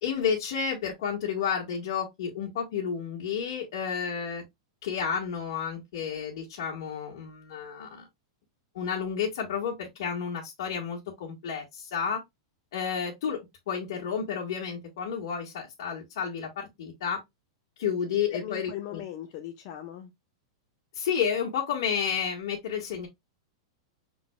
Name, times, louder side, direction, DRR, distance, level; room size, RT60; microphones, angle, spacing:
voice 1, 0.0-4.4 4.8-8.1 8.7-12.2 12.7-17.2 17.8-19.0 20.9-23.1, left 7 dB, 65° left, 1.6 m, -31 dB
voice 2, 18.3-20.1, left 12 dB, 45° left, 0.7 m, -39 dB
6.0 x 3.8 x 2.2 m
supercardioid pair, 150°, 3 cm